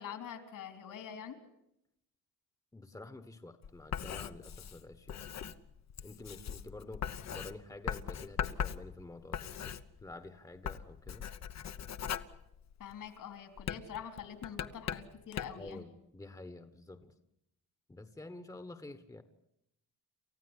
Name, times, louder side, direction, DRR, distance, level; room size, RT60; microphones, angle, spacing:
voice 1, 0.0-1.4 12.8-15.8, left 8 dB, 70° left, 8 dB, 3.8 m, -45 dB
voice 2, 2.7-5.3 6.0-9.7 10.0-11.3 15.6-17.1 17.9-19.2, left 2 dB, 10° left, 10 dB, 1.3 m, -49 dB
Writing, 3.6-10.3 10.6-13.1 13.6-15.7, left 8 dB, 55° left, 1.1 m, -40 dB
29.0 x 15.0 x 9.9 m, 0.81 s
cardioid pair, 125°, 33 cm